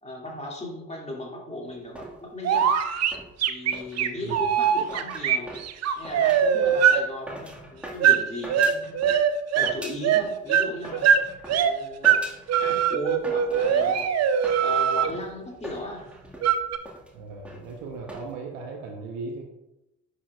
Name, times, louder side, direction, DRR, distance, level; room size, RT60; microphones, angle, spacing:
voice 1, 0.0-2.7 3.5-5.6 6.0-9.0 9.5-11.1 11.6-12.3 12.6-14.1 14.6-16.0, left 1 dB, 15° left, -1 dB, 2.3 m, -36 dB
sound 1, 1.7-9.3 9.6-10.4 10.8-18.3, right 1 dB, 5° right, 1.8 m, -43 dB
sound 2, 2.4-7.0 8.0-8.2 8.5-9.7 10.0-11.7 12.0-12.2 12.5-15.1 16.4-16.8, right 8 dB, 45° right, 0.6 m, -21 dB
voice 2, 17.1-19.4, right 4 dB, 70° right, 1 dB, 1.0 m, -37 dB
11.0 x 4.9 x 2.4 m, 0.94 s
figure-of-eight pair, 45°, 37 cm